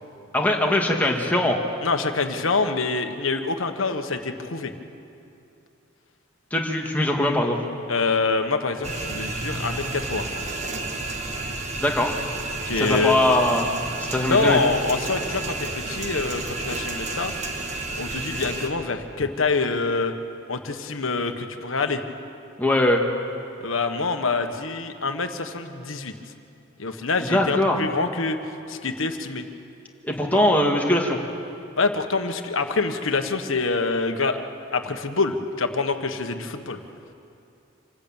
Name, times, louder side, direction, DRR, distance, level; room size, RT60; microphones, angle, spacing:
voice 1, 0.3-1.6 6.5-7.6 11.8-12.2 12.8-13.7 14.1-14.6 22.6-23.0 27.3-27.8 30.0-31.2, left 1 dB, 10° left, 0 dB, 2.1 m, -21 dB
voice 2, 1.8-4.7 7.9-10.3 12.7-13.2 14.3-17.3 17.9-20.1 20.5-22.0 23.6-26.1 26.8-29.5 30.3-30.4 31.8-34.4 34.7-36.8, left 4 dB, 80° left, 7 dB, 1.5 m, -25 dB
sound 1, 8.8-18.7, right 2 dB, 35° right, 1.6 m, -31 dB
26.5 x 14.0 x 8.9 m, 2.6 s
head